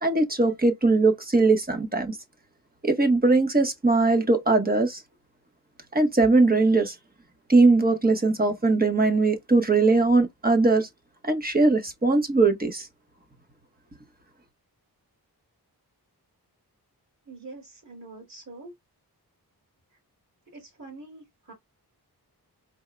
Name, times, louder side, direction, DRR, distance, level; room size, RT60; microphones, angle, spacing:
voice 1, 0.0-2.2 2.8-5.0 5.9-6.9 7.5-10.9 11.2-12.9, right 3 dB, 20° right, 1.2 m, -20 dB
voice 2, 17.3-18.7 20.5-21.5, right 3 dB, 40° right, 2.4 m, -44 dB
4.6 x 3.6 x 2.2 m
cardioid pair, 60°, 40 cm